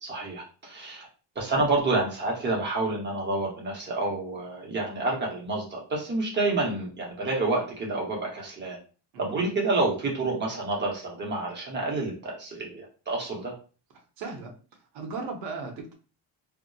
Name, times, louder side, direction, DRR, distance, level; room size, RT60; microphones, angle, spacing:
voice 1, 0.0-1.1 1.4-8.8 9.2-13.5, right 2 dB, 25° right, -2 dB, 0.7 m, -29 dB
voice 2, 14.2-14.5 14.9-15.9, right 4 dB, 80° right, 3 dB, 0.8 m, -36 dB
2.7 x 2.1 x 2.2 m, 0.36 s
cardioid pair, 165°, 44 cm